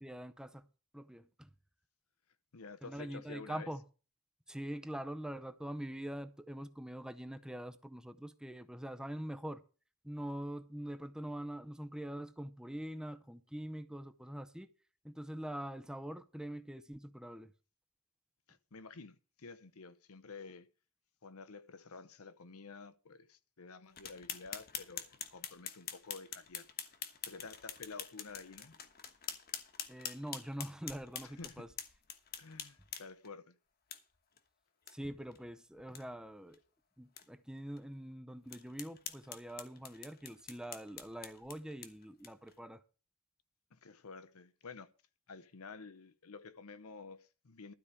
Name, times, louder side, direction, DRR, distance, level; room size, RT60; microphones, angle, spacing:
voice 1, 0.0-0.6 0.9-1.5 2.8-3.8 4.5-9.6 10.0-14.7 15.0-17.5 29.9-31.7 34.9-36.6 37.0-42.8, right 1 dB, 5° right, 0.5 m, -44 dB
voice 2, 2.5-3.7 18.5-20.7 21.2-26.7 27.3-28.7 31.2-31.6 32.4-33.6 43.7-44.9 45.3-47.7, left 4 dB, 75° left, 0.8 m, -50 dB
sound 1, 24.0-33.3 33.9-34.0 34.4-34.5 34.9-35.0 35.3-35.4 35.8-36.0 36.5-36.6 37.2-37.3 37.8-37.9 38.5-42.5, left 8 dB, 45° left, 1.2 m, -46 dB
12.5 x 4.9 x 8.3 m
head